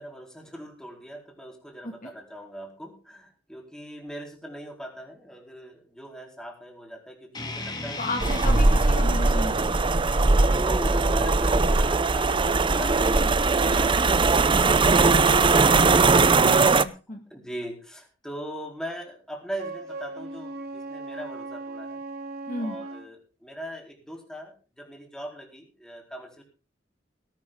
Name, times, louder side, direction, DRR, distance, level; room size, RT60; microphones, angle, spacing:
voice 1, 0.0-8.2 10.3-15.0 16.8-22.0 22.6-26.4, equal, 5° left, 1 dB, 4.4 m, -40 dB
sound 1, 7.3-12.4, left 2 dB, 25° left, 2.9 m, -38 dB
voice 2, 8.0-9.8 15.1-15.4 16.4-17.2 22.5-22.8, left 1 dB, 45° left, 4 dB, 2.1 m, -34 dB
sound 2, 8.2-16.8, right 3 dB, 25° right, 0.6 m, -20 dB
Wind instrument woodwind instrument, 19.5-23.1, right 2 dB, 60° right, 3.7 m, -38 dB
18.5 x 12.0 x 3.8 m, 0.34 s
head